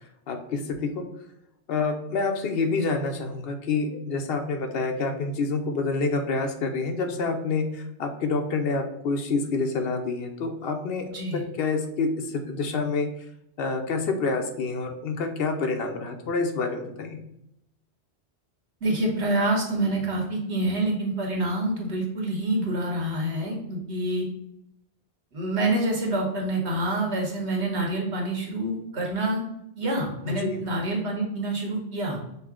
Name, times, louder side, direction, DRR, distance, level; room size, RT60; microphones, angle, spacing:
voice 1, 0.3-1.0 1.7-13.1 13.6-17.2 30.3-30.6, left 4 dB, 65° left, 5 dB, 0.8 m, -27 dB
voice 2, 11.1-11.4 18.8-24.3 25.3-29.4 29.8-32.2, right 1 dB, 85° right, 0 dB, 1.4 m, -27 dB
5.4 x 2.0 x 3.6 m, 0.80 s
omnidirectional pair, 1.1 m